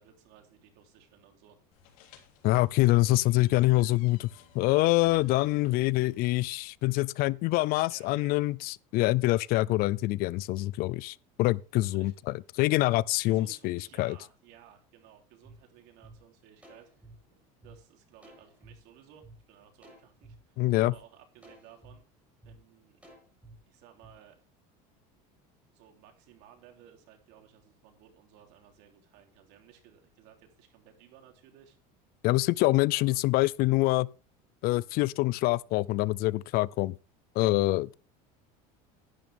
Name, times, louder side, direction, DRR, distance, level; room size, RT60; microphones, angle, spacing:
voice 1, 0.0-1.6 7.9-8.3 11.8-12.1 13.2-16.9 17.6-22.0 22.5-23.0 23.7-24.4 25.7-31.8 32.9-33.2, right 10 dB, 65° right, 3.4 m, -57 dB
sound 1, 1.7-6.7, left 7 dB, 85° left, 3.4 m, -57 dB
voice 2, 2.4-4.3 4.5-12.1 12.5-14.2 20.6-20.9 32.2-34.1 34.6-36.9 37.4-37.9, left 19 dB, 55° left, 0.5 m, -25 dB
sound 2, 15.4-15.5 16.0-16.1 16.6-17.7 18.2-18.7 19.2-19.3 19.8-20.3 20.8-20.9 21.4-21.9 22.4-22.6 23.0-23.5 24.0-24.1, right 2 dB, 5° right, 7.0 m, -53 dB
11.5 x 11.0 x 3.5 m
supercardioid pair, 130°, 18 cm